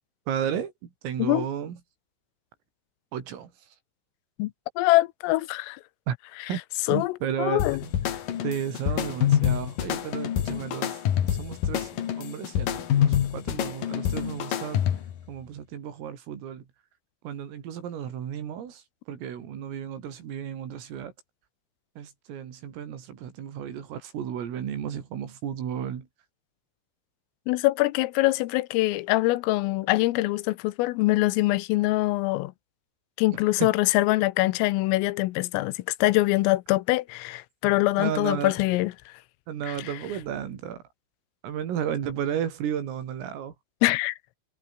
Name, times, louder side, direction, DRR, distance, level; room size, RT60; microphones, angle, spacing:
voice 1, 0.3-1.8 3.1-3.5 6.1-6.2 6.5-6.6 6.9-7.9 8.4-11.0 11.2-14.8 15.3-16.6 17.2-21.1 22.0-26.1 33.6-33.7 38.0-38.5 39.5-40.8 41.4-43.5, right 9 dB, 80° right, 6.1 m, -33 dB
voice 2, 4.8-5.8 6.9-7.8 27.5-32.5 33.2-39.1 39.7-39.9 43.8-44.2, left 19 dB, 85° left, 3.5 m, -24 dB
sound 1, 7.6-15.2, left 10 dB, 55° left, 3.0 m, -26 dB
omnidirectional pair, 5.9 m